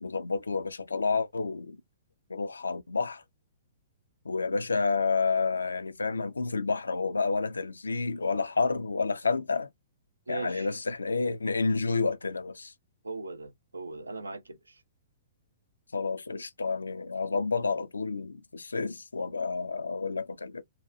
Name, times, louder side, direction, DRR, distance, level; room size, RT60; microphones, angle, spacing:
voice 1, 0.0-1.8 2.3-3.2 4.3-9.7 10.3-12.7 15.9-20.6, left 4 dB, 75° left, 0.3 m, -30 dB
voice 2, 10.3-10.7 13.0-14.8, right 3 dB, 80° right, 0.4 m, -39 dB
2.8 x 2.2 x 2.4 m
figure-of-eight pair, 115°, 0 cm